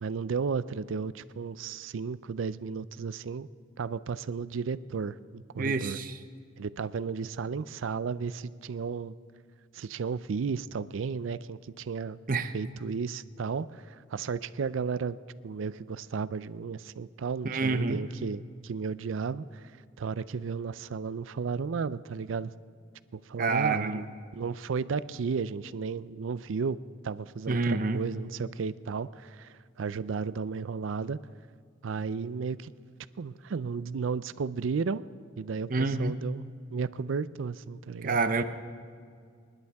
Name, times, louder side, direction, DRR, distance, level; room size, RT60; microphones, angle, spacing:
voice 1, 0.0-3.5 3.8-6.0 6.6-9.1 9.7-12.2 12.5-15.2 15.4-19.6 20.0-22.5 23.1-24.0 24.3-26.8 27.0-31.2 31.8-32.7 33.2-35.0 35.4-38.2, right 5 dB, 85° right, 16 dB, 0.4 m, -33 dB
voice 2, 5.6-6.2 12.3-12.5 17.4-18.0 23.4-24.1 27.5-28.0 35.7-36.2 38.0-38.4, right 3 dB, 45° right, 9 dB, 0.7 m, -27 dB
26.0 x 11.5 x 3.5 m, 2.1 s
head